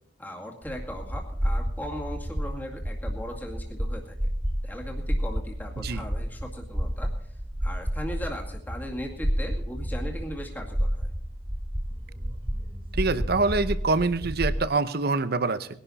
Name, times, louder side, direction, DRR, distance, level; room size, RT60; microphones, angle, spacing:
voice 1, 0.2-4.2 4.6-7.1 7.6-11.1, equal, 10° left, 0 dB, 2.2 m, -38 dB
sound 1, 0.6-14.7, equal, 30° right, 2.4 m, -31 dB
voice 2, 12.9-15.7, right 3 dB, 60° right, 14 dB, 0.8 m, -25 dB
20.0 x 11.5 x 4.1 m, 0.68 s
head